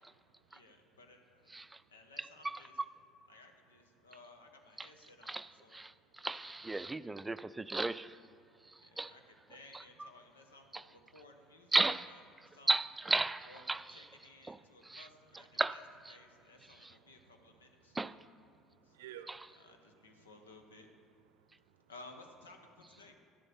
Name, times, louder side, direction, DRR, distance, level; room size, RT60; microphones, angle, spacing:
voice 1, 0.5-1.6 1.9-2.8 3.3-5.9 6.2-6.6 6.8-7.1 8.8-9.2 9.5-11.8 12.1-12.7 13.4-18.0 18.8-19.1 19.5-20.9 21.9-23.2, left 2 dB, 85° left, 5 dB, 1.1 m, -58 dB
voice 2, 5.3-8.2 9.0-9.1 10.7-10.8 11.7-12.1 12.7-13.8 14.5-14.6 14.9-15.1 15.6-15.7 16.8-16.9 18.0-18.1 19.3-19.4, right 2 dB, 15° right, 15 dB, 0.4 m, -34 dB
voice 3, 5.9-6.3 8.4-9.0 14.7-15.0 16.3-17.4 17.8-18.0 18.5-19.7 20.2-20.3 21.3-21.9, right 11 dB, 75° right, 11 dB, 0.6 m, -58 dB
12.5 x 11.0 x 4.4 m, 2.4 s
hypercardioid pair, 60°, 0 cm